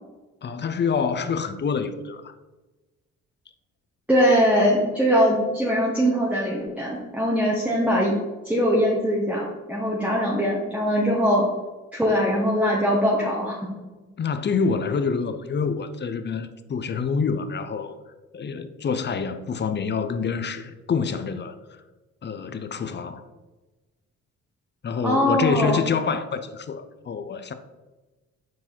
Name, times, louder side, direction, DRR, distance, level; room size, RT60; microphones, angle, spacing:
voice 1, 0.4-2.3 14.2-17.9 18.3-21.6 22.2-23.2 24.8-27.5, left 5 dB, 35° left, 0.6 m, -26 dB
voice 2, 4.1-8.1 8.4-11.4 11.9-13.5 25.0-25.8, equal, 5° right, 1.3 m, -21 dB
6.2 x 4.7 x 4.4 m
cardioid pair, 90°, 30 cm